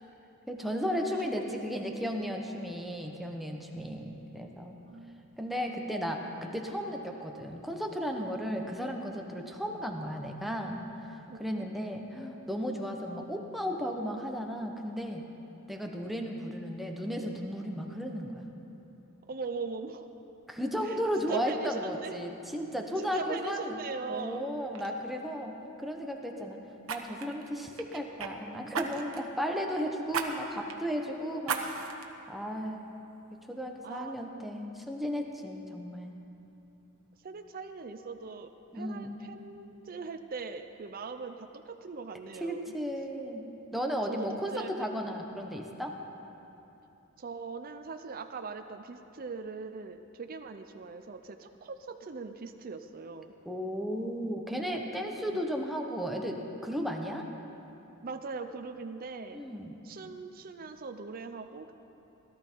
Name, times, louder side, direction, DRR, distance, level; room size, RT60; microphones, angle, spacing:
voice 1, 0.5-4.8 5.4-15.2 15.7-18.4 20.5-23.8 24.1-26.6 26.9-31.7 32.3-32.8 33.5-36.2 38.7-39.2 42.4-43.4 43.7-45.9 53.4-57.3 59.3-59.7, equal, ahead, 1 dB, 1.0 m, -35 dB
voice 2, 4.8-5.3 11.3-12.2 19.3-20.1 20.8-21.0 21.3-22.2 23.0-24.5 33.8-34.2 37.2-42.8 44.1-45.0 45.3-45.6 47.2-53.3 55.3-55.4 58.0-59.4 59.8-61.7, right 4 dB, 45° right, 7 dB, 0.5 m, -41 dB
Fire, 24.2-24.4 24.7-24.9 26.8-28.3 28.7-29.3 30.1-30.3 30.7-30.8 31.4-32.1 32.6-32.7, right 6 dB, 75° right, 1.0 m, -35 dB
17.5 x 13.0 x 4.6 m, 2.9 s
head